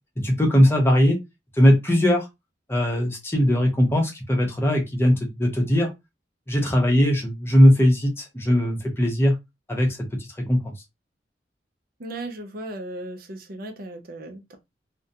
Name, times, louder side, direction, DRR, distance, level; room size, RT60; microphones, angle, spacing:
voice 1, 0.2-1.2 1.5-2.3 2.7-5.9 6.5-9.4 9.7-10.7, equal, 15° left, 0.7 m, -20 dB
voice 2, 12.0-14.6, right 1 dB, 55° right, 0.5 m, -36 dB
2.5 x 2.1 x 2.6 m
head